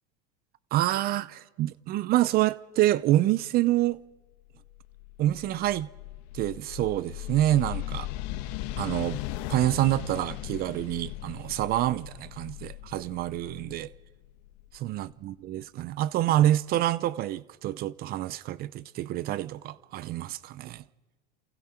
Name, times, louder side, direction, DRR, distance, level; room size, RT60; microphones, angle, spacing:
voice 1, 0.7-4.0 5.2-5.9 6.3-8.1 8.8-9.2 9.5-13.9 14.8-20.8, right 14 dB, 45° right, 0.7 m, -27 dB
sound 1, 4.5-15.3, left 15 dB, 70° left, 1.4 m, -38 dB
28.0 x 28.0 x 4.5 m
supercardioid pair, 120°, 21 cm